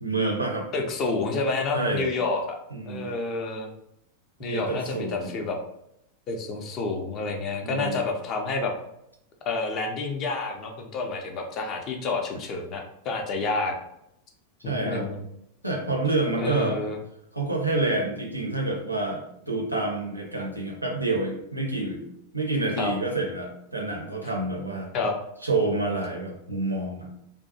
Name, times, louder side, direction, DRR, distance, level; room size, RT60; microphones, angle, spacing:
voice 1, 0.0-0.7 1.7-2.1 2.7-3.1 4.4-5.3 7.6-8.0 14.6-15.1 15.6-16.8 17.3-22.0 22.3-24.9 25.4-27.1, right 2 dB, 85° right, 0 dB, 0.6 m, -28 dB
voice 2, 0.7-2.6 2.9-3.7 4.4-5.6 6.3-8.7 9.5-13.7 14.6-15.2 16.3-17.0 22.8-22.9 24.9-25.2, left 3 dB, 35° left, 2 dB, 0.5 m, -29 dB
2.6 x 2.1 x 2.6 m, 0.78 s
figure-of-eight pair, 90°, 0 cm